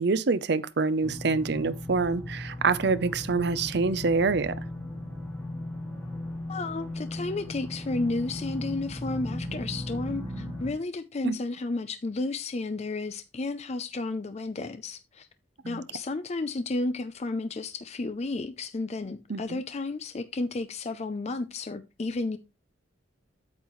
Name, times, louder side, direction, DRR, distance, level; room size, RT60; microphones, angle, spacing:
voice 1, 0.0-4.5 11.2-11.4 15.6-15.8 19.3-19.6, right 4 dB, 60° right, 0.6 m, -26 dB
sound 1, 1.0-10.7, left 1 dB, 10° left, 3.3 m, -37 dB
voice 2, 6.5-15.3 15.7-22.4, left 2 dB, 35° left, 0.5 m, -32 dB
8.6 x 8.0 x 3.1 m
head